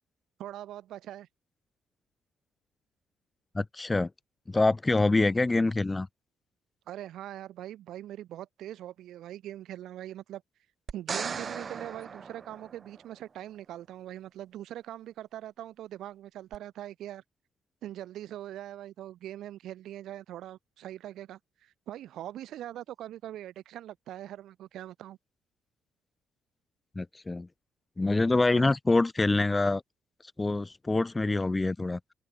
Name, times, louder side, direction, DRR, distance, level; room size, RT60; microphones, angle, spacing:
voice 1, 0.4-1.3 6.9-10.4 10.9-17.2 17.8-25.2 28.5-28.7, right 12 dB, 80° right, 6.2 m, -42 dB
voice 2, 3.5-4.1 4.5-6.1 27.0-27.5 28.0-29.8 30.4-32.0, left 2 dB, 20° left, 0.9 m, -25 dB
sound 1, 10.9-13.2 16.5-16.6, right 6 dB, 40° right, 1.1 m, -37 dB
open air
cardioid pair, 90°, 0 cm